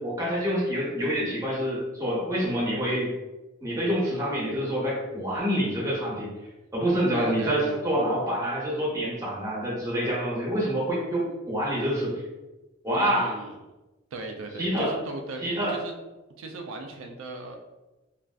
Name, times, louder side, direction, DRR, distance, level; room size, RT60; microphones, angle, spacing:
voice 1, 0.0-3.1 3.6-6.3 6.7-12.1 12.8-13.3 14.6-14.9 15.4-15.7, equal, 15° right, -5 dB, 0.8 m, -27 dB
voice 2, 7.1-7.8 12.9-13.6 14.1-15.9 16.4-17.6, right 3 dB, 85° right, 3 dB, 0.4 m, -38 dB
3.2 x 2.5 x 2.3 m, 1.1 s
head